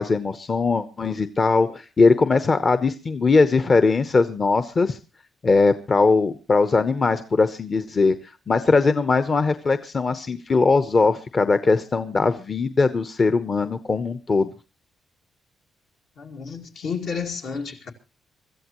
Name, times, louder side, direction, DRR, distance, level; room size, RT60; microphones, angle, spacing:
voice 1, 0.0-5.0 5.4-8.1 8.5-14.5, left 4 dB, 40° left, 0.9 m, -20 dB
voice 2, 16.2-17.9, left 5 dB, 75° left, 2.3 m, -31 dB
24.5 x 14.0 x 3.0 m
cardioid pair, 80°, 0 cm